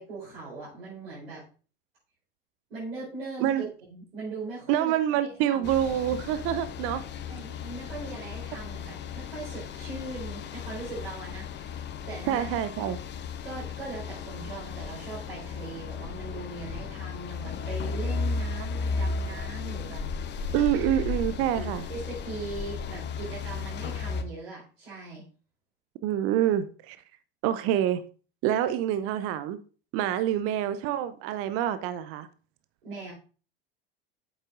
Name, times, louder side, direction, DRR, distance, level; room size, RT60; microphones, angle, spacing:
voice 1, 0.0-1.4 2.7-5.7 7.3-11.7 12.1-12.5 13.4-20.4 21.5-25.2 32.8-33.1, right 3 dB, 80° right, 4.6 m, -40 dB
voice 2, 4.7-7.0 12.3-13.0 20.5-21.9 26.0-27.0 27.4-28.0 28.4-29.6 29.9-32.3, right 11 dB, 50° right, 0.6 m, -26 dB
sound 1, 5.6-24.2, left 5 dB, 35° left, 0.9 m, -35 dB
8.2 x 8.0 x 2.6 m
figure-of-eight pair, 70°, 30 cm